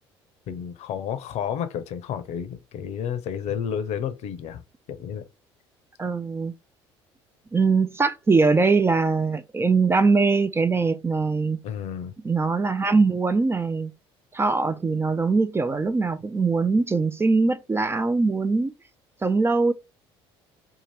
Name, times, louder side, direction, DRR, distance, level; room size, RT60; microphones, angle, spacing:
voice 1, 0.5-4.6 4.9-5.2 11.6-12.1, left 8 dB, 60° left, 0.6 m, -31 dB
voice 2, 6.0-6.5 7.5-11.6 12.2-13.9 14.3-18.7 19.2-19.7, right 4 dB, 20° right, 0.4 m, -22 dB
2.7 x 2.4 x 3.1 m
hypercardioid pair, 60°, 13 cm